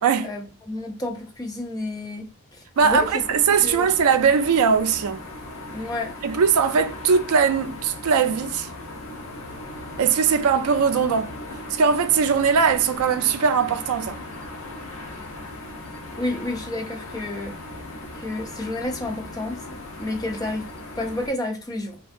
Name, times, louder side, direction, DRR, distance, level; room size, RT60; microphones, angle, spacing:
voice 1, 0.2-3.9 5.7-6.1 16.2-17.6 18.2-19.7 20.0-22.0, left 2 dB, 15° left, 0.4 m, -31 dB
sound 1, 2.7-21.3, left 2 dB, 60° left, 0.6 m, -38 dB
voice 2, 2.8-5.2 6.2-8.7 10.0-11.3 11.7-14.2, right 6 dB, 75° right, 0.3 m, -20 dB
2.6 x 2.2 x 2.4 m
head